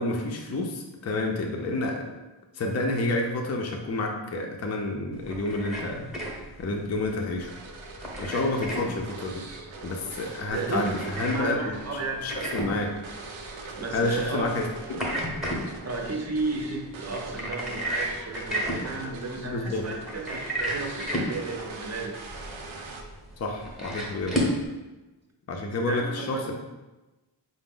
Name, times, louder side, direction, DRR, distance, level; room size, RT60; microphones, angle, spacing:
voice 1, 0.0-2.1 2.5-7.5 8.2-9.4 9.8-11.6 12.2-12.9 13.6-15.1 19.4-19.9 23.4-24.4 25.5-26.5, left 2 dB, 35° left, 1 dB, 0.5 m, -29 dB
sound 1, 5.1-24.7, equal, ahead, 0.8 m, -34 dB
sound 2, 7.4-23.4, right 3 dB, 85° right, 0.6 m, -42 dB
voice 2, 10.5-12.4 13.7-14.5 15.8-22.1 25.9-26.5, right 3 dB, 35° right, 1 dB, 0.7 m, -33 dB
4.8 x 2.0 x 3.7 m, 1.1 s
wide cardioid pair, 100°, 46 cm